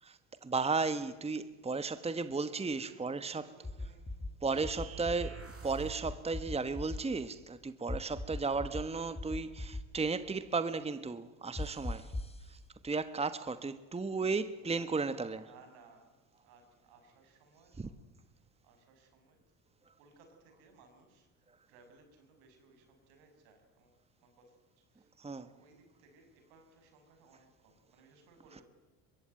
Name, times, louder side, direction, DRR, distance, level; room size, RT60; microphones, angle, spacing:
voice 1, 0.0-3.4 4.4-5.3 5.6-12.1 12.5-12.6 12.8-15.4 17.8-17.9 25.2-25.5, right 4 dB, 15° right, 1.3 m, -34 dB
voice 2, 2.5-4.3 4.8-5.6 14.6-14.9 15.2-16.2 16.4-19.4 20.0-24.6 24.9-28.6, right 4 dB, 80° right, 6.5 m, -62 dB
sound 1, 3.6-4.3 4.6-5.3 6.0-7.0 7.9-8.8 9.2-9.8 11.6-12.4, left 2 dB, 15° left, 2.6 m, -38 dB
sound 2, 4.5-6.1, right 6 dB, 35° right, 6.1 m, -46 dB
23.0 x 22.5 x 9.1 m
supercardioid pair, 75°, 41 cm